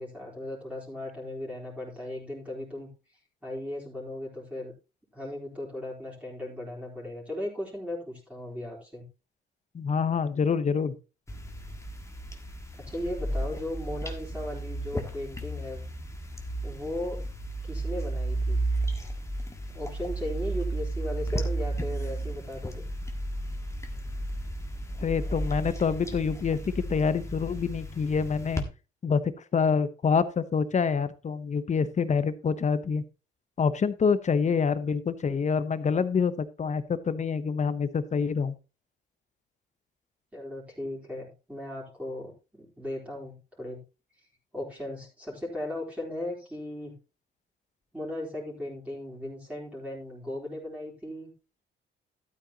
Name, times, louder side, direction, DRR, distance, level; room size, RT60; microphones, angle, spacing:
voice 1, 0.0-2.9 3.4-4.7 5.1-9.1 12.8-15.8 16.6-17.3 17.6-18.6 19.7-22.8 40.3-43.8 44.5-47.0 47.9-51.3, left 1 dB, 5° right, -4 dB, 4.0 m, -37 dB
voice 2, 9.7-10.9 25.0-28.6 29.0-29.2 29.5-33.0 33.6-38.5, left 5 dB, 35° left, 14 dB, 0.9 m, -26 dB
sound 1, 11.3-28.6, right 1 dB, 15° left, 1.7 m, -33 dB
12.5 x 8.9 x 2.9 m, 0.31 s
cardioid pair, 90°, 20 cm